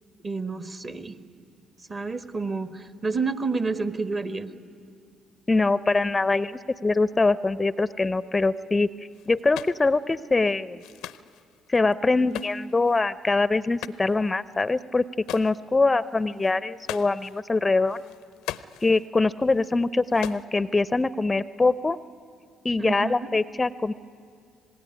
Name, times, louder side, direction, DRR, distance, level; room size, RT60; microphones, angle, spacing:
voice 1, 0.2-1.2 1.9-4.5 22.8-23.3, right 4 dB, 40° right, 11 dB, 1.5 m, -29 dB
voice 2, 5.5-8.9 9.3-10.8 11.7-15.0 15.3-18.0 18.8-22.0 22.6-23.9, left 3 dB, 25° left, 17 dB, 0.5 m, -23 dB
sound 1, 9.1-9.9 10.8-13.1 13.6-14.3 14.6-14.8 15.1-15.6 16.0-17.4 17.8-19.1 19.4-20.4, left 12 dB, 75° left, 0.5 m, -40 dB
26.0 x 19.0 x 9.8 m, 2.4 s
hypercardioid pair, 50°, 0 cm